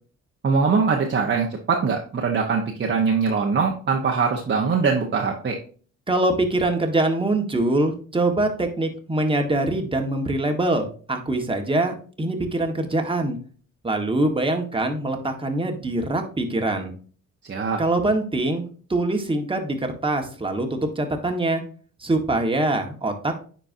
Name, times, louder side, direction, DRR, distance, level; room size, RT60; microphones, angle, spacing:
voice 1, 0.4-5.6 17.5-17.8, right 5 dB, 40° right, 0 dB, 1.2 m, -22 dB
voice 2, 6.1-13.4 13.8-16.9 17.8-18.6 18.9-21.6 22.0-23.3, right 2 dB, 15° right, 4 dB, 1.5 m, -23 dB
9.8 x 4.5 x 2.7 m, 0.41 s
cardioid pair, 90°, 30 cm